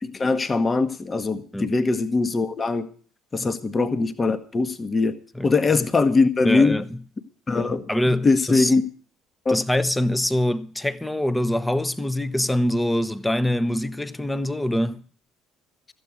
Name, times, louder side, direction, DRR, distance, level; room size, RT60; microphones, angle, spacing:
voice 1, 0.0-2.9 3.3-5.2 5.4-6.8 7.5-7.8 8.2-8.8 9.4-9.6, left 3 dB, 25° left, 1.1 m, -21 dB
voice 2, 6.4-7.0 7.9-8.7 9.5-15.0, left 1 dB, 10° left, 0.8 m, -24 dB
13.5 x 8.1 x 8.1 m
figure-of-eight pair, 55°, 0 cm